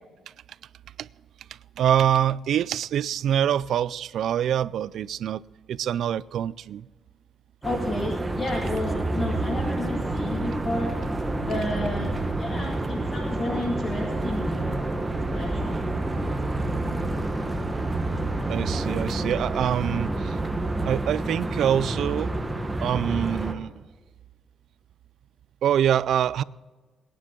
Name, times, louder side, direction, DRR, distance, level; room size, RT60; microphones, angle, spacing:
voice 1, 1.8-5.4 5.7-6.9 18.5-20.4 20.8-22.3 22.8-23.9 25.6-26.4, right 10 dB, 70° right, 0.3 m, -25 dB
voice 2, 7.6-11.0 11.4-14.8 15.3-15.9, left 2 dB, 35° left, 2.2 m, -32 dB
sound 1, 7.6-23.5, right 2 dB, 15° right, 1.2 m, -29 dB
sound 2, 8.5-20.9, right 3 dB, 50° right, 2.6 m, -36 dB
22.0 x 10.0 x 3.8 m
cardioid pair, 135°, 0 cm